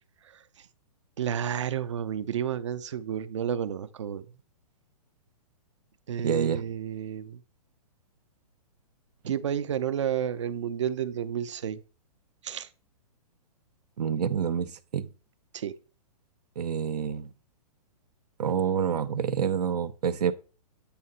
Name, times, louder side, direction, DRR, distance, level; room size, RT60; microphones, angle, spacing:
voice 1, 1.2-4.3 6.1-7.4 9.3-11.8 12.4-12.7 15.5-15.7, right 9 dB, 50° right, 0.5 m, -31 dB
voice 2, 6.2-6.6 14.0-15.1 16.6-17.3 18.4-20.3, right 7 dB, 85° right, 0.7 m, -27 dB
8.4 x 2.8 x 5.4 m
hypercardioid pair, 175°, 20 cm